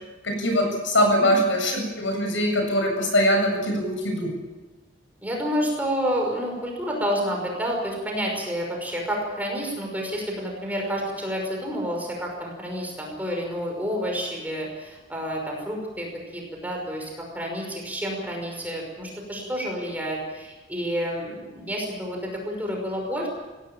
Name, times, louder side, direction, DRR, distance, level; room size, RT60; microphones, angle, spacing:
voice 1, 0.2-4.3, equal, 70° left, 3 dB, 7.8 m, -22 dB
voice 2, 5.2-23.3, equal, 10° right, 0 dB, 5.7 m, -29 dB
23.0 x 17.0 x 8.8 m, 1.2 s
head